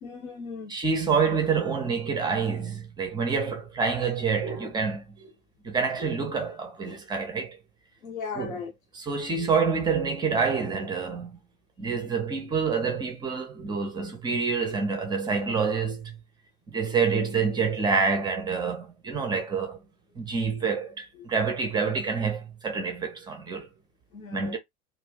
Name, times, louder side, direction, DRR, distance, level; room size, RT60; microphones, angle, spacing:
voice 1, 0.0-0.8 8.0-8.7 13.8-13.9 20.6-20.7 21.1-21.3 24.1-24.6, left 5 dB, 70° left, 0.8 m, -38 dB
voice 2, 0.7-5.3 5.6-7.6 8.4-8.6 9.0-11.4 11.8-16.2 16.7-19.8 20.2-23.7 24.3-24.6, right 5 dB, 10° right, 0.5 m, -27 dB
2.5 x 2.3 x 3.4 m
figure-of-eight pair, 90°, 43 cm